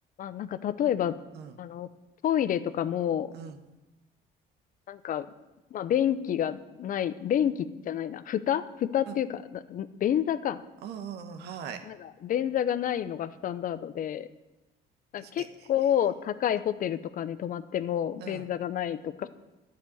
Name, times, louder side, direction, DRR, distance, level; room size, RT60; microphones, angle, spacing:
voice 1, 0.2-1.2 1.6-1.9 2.2-3.3 4.9-5.3 5.7-10.6 11.9-12.0 12.2-14.3 15.1-19.3, left 10 dB, 55° left, 14 dB, 0.7 m, -29 dB
voice 2, 10.8-11.8 15.2-15.7 18.2-18.5, right 7 dB, 75° right, 9 dB, 1.2 m, -41 dB
11.0 x 6.7 x 9.3 m, 1.1 s
cardioid pair, 110°, 17 cm